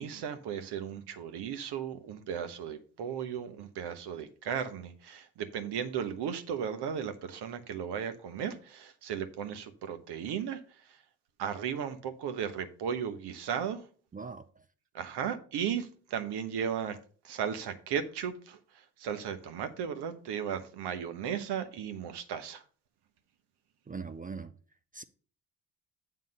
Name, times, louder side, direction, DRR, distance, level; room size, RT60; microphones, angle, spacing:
voice 1, 0.0-10.6 10.9-11.0 11.4-13.8 14.9-17.0 17.2-22.6, right 8 dB, 60° right, 1.1 m, -35 dB
voice 2, 14.1-14.5 23.9-24.5 24.9-25.0, right 5 dB, 20° right, 0.4 m, -40 dB
7.7 x 3.7 x 6.6 m
hypercardioid pair, 60°, 46 cm